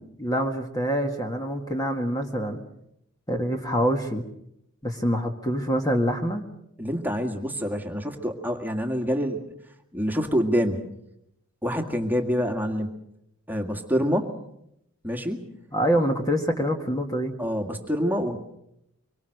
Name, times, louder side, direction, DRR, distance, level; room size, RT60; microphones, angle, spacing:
voice 1, 0.0-2.6 3.3-4.2 4.8-6.4 15.7-17.3, equal, 15° left, 4 dB, 1.8 m, -25 dB
voice 2, 6.8-9.4 9.9-10.8 11.6-12.9 13.5-14.3 15.0-15.4 17.4-18.4, equal, 10° right, 4 dB, 2.0 m, -26 dB
25.0 x 24.0 x 6.6 m, 0.79 s
head